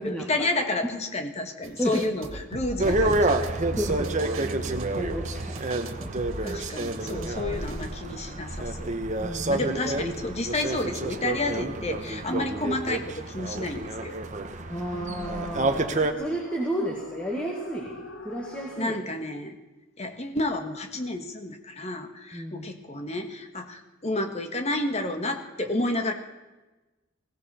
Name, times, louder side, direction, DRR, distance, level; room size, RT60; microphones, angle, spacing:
voice 1, 0.0-3.4 6.4-8.9 9.5-14.1 18.8-19.6 20.0-26.1, left 2 dB, 30° left, 6 dB, 1.6 m, -30 dB
sound 1, 1.6-7.9, right 2 dB, 85° right, 1.2 m, -39 dB
sound 2, 2.8-16.1, right 2 dB, 35° right, 1.1 m, -29 dB
voice 2, 3.8-4.1 4.9-5.7 6.0-6.1 7.2-7.6 9.2-9.7 12.3-12.4 14.7-19.0 22.3-22.7, equal, 5° left, -1 dB, 1.8 m, -32 dB
sound 3, 13.0-19.2, left 1 dB, 65° left, 1.7 m, -47 dB
20.0 x 16.5 x 4.3 m, 1.1 s
head